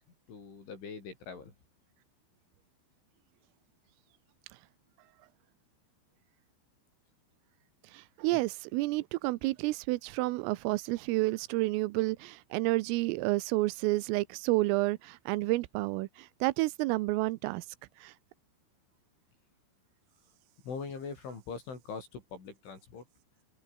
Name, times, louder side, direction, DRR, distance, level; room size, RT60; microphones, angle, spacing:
voice 1, 0.3-1.5 8.3-8.4 20.6-23.1, left 5 dB, 70° left, 9.3 m, -42 dB
voice 2, 7.9-17.7 18.0-18.1, right 20 dB, 90° right, 3.5 m, -30 dB
omnidirectional pair, 5.7 m